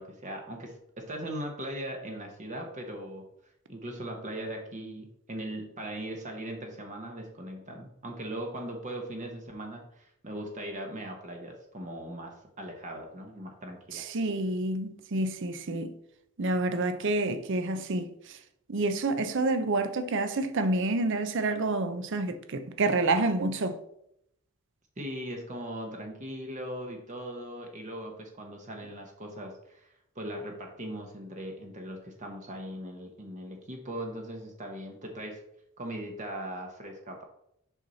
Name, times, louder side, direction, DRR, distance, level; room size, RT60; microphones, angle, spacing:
voice 1, 0.0-3.3 3.7-14.1 25.0-35.4 35.8-37.2, right 1 dB, 35° right, 0.9 m, -39 dB
voice 2, 13.9-15.9 16.4-18.1 18.7-23.8, right 2 dB, 55° right, 0.6 m, -28 dB
5.9 x 5.6 x 4.0 m
head